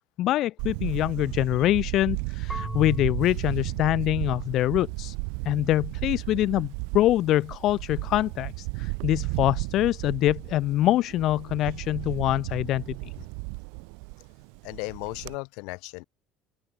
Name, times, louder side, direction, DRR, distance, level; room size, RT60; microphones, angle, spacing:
voice 1, 0.2-5.1 5.4-13.1, left 14 dB, 60° left, 1.1 m, -25 dB
Camera, 0.6-15.3, right 40 dB or more, 80° right, 0.7 m, -34 dB
Marimba xylophone / Wood, 2.5-5.4, left 1 dB, 5° left, 4.2 m, -40 dB
voice 2, 14.6-16.0, left 30 dB, 75° left, 3.7 m, -36 dB
open air
supercardioid pair, 85°, 0 cm